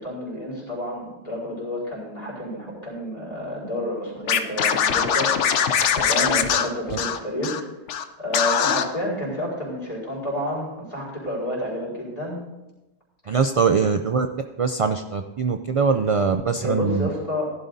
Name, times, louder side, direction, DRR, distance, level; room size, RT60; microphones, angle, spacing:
voice 1, 0.0-7.6 8.2-12.4 13.2-13.6 16.6-17.5, equal, 35° left, -5 dB, 4.6 m, -30 dB
Scratching (performance technique), 4.3-7.6 7.9-8.0 8.3-8.8, left 8 dB, 90° left, 1.0 m, -22 dB
voice 2, 13.3-14.3 14.6-17.1, right 5 dB, 60° right, 7 dB, 0.3 m, -22 dB
15.0 x 12.0 x 2.7 m, 1.0 s
omnidirectional pair, 1.2 m